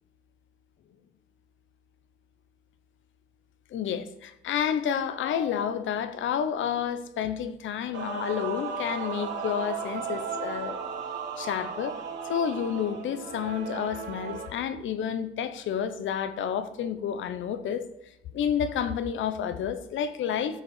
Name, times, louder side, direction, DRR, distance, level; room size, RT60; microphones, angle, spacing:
voice 1, 3.7-10.8 11.4-12.0 12.3-17.9 18.3-20.6, left 8 dB, 75° left, 0.9 m, -30 dB
Male singing / Female singing / Musical instrument, 7.9-14.5, right 5 dB, 65° right, 3.0 m, -35 dB
14.0 x 5.0 x 6.5 m
cardioid pair, 90°, 20 cm